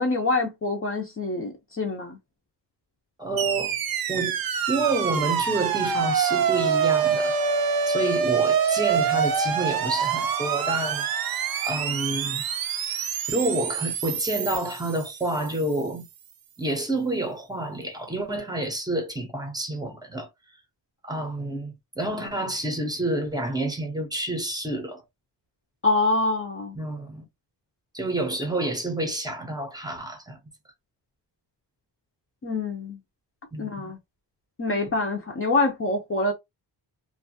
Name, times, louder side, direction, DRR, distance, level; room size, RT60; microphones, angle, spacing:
voice 1, 0.0-2.2 25.8-26.8 32.4-33.0 33.6-34.0 34.6-36.3, left 2 dB, 30° left, 0.5 m, -25 dB
voice 2, 3.2-3.8 4.1-4.4 4.7-7.3 7.9-11.1 11.3-12.4 13.3-16.1 16.6-20.3 21.0-25.0 26.8-27.2 27.9-30.4 33.5-33.9, right 2 dB, 10° right, 0.6 m, -29 dB
sound 1, 3.4-15.6, right 7 dB, 55° right, 0.5 m, -26 dB
2.5 x 2.2 x 2.6 m
wide cardioid pair, 165°, 43 cm